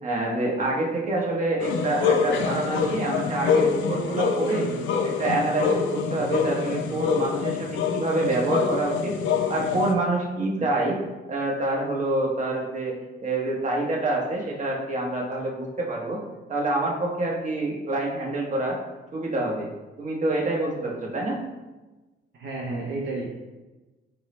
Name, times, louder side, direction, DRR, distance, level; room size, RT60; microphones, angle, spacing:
voice 1, 0.0-4.7 5.0-9.1 9.5-11.0 11.3-12.9 13.2-16.2 16.5-18.8 19.1-19.7 20.0-21.4, right 2 dB, 40° right, -2 dB, 0.9 m, -26 dB
sound 1, 1.6-9.9, left 6 dB, 75° left, 0.4 m, -26 dB
voice 2, 22.4-23.3, right 2 dB, 60° right, -2 dB, 0.6 m, -31 dB
4.3 x 2.0 x 3.2 m, 1.1 s
cardioid pair, 90°, 20 cm